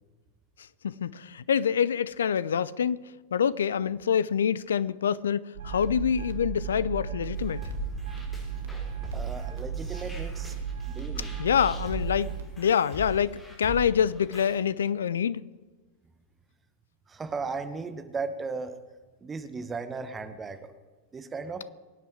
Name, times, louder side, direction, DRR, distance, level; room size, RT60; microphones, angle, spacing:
voice 1, 0.8-3.0 3.3-7.7 11.2-12.3 12.6-15.4, left 8 dB, 65° left, 0.5 m, -26 dB
sound 1, 5.5-12.4, right 7 dB, 60° right, 1.4 m, -35 dB
sound 2, 7.3-14.6, right 1 dB, 10° left, 6.3 m, -41 dB
voice 2, 9.1-10.5 10.9-11.4 17.1-18.8 19.2-20.7 21.1-21.6, right 4 dB, 15° right, 1.3 m, -36 dB
23.0 x 9.0 x 4.9 m
figure-of-eight pair, 90°, 0 cm